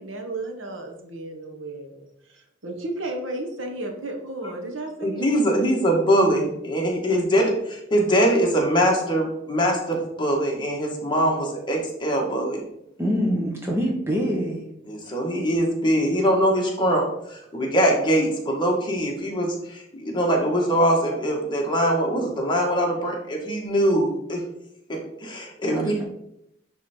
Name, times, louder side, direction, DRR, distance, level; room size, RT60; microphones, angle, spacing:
voice 1, 0.0-5.3, right 2 dB, 90° right, 3 dB, 1.3 m, -33 dB
voice 2, 5.0-12.6 14.9-24.4 24.9-26.0, equal, 25° left, -1 dB, 1.6 m, -22 dB
voice 3, 13.0-14.6 25.7-26.0, equal, 15° right, -2 dB, 1.0 m, -25 dB
10.0 x 3.5 x 4.5 m, 0.80 s
head